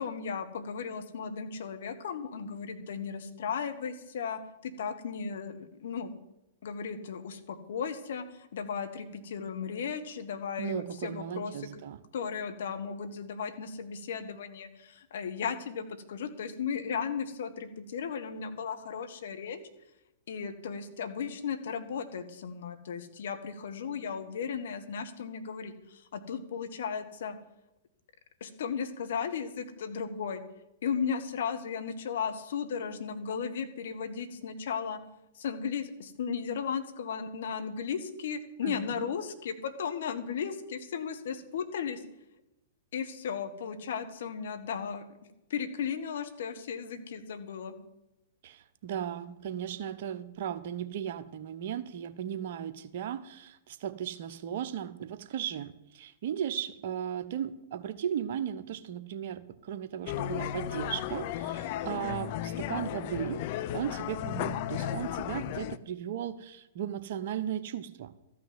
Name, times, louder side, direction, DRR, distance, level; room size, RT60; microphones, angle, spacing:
voice 1, 0.0-6.1 6.6-11.7 12.1-19.6 20.3-27.4 28.4-30.4 30.8-35.0 35.3-42.0 42.9-45.0 45.5-47.7, left 6 dB, 65° left, 9 dB, 1.5 m, -35 dB
voice 2, 10.6-12.0 38.6-39.1 48.4-63.4 63.7-68.1, right 9 dB, 55° right, 11 dB, 1.0 m, -36 dB
sound 1, 60.1-65.8, left 11 dB, 50° left, 0.6 m, -34 dB
13.5 x 6.2 x 9.6 m, 0.92 s
hypercardioid pair, 115°, 0 cm